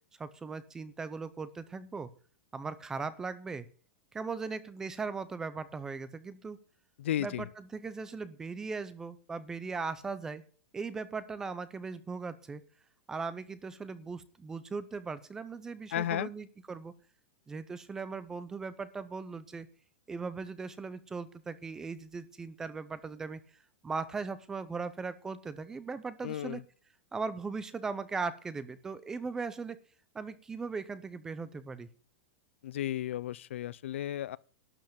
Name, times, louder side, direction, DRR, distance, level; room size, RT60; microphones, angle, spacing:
voice 1, 0.2-2.1 2.5-3.7 4.1-6.6 7.2-10.4 10.7-12.6 13.1-16.9 17.5-19.7 20.1-23.4 23.8-26.6 27.1-29.8 30.1-31.9, right 4 dB, 10° right, 0.6 m, -38 dB
voice 2, 7.0-7.5 15.9-16.3 26.2-26.6 32.6-34.4, left 12 dB, 75° left, 0.5 m, -34 dB
12.0 x 5.5 x 8.6 m
supercardioid pair, 175°, 7 cm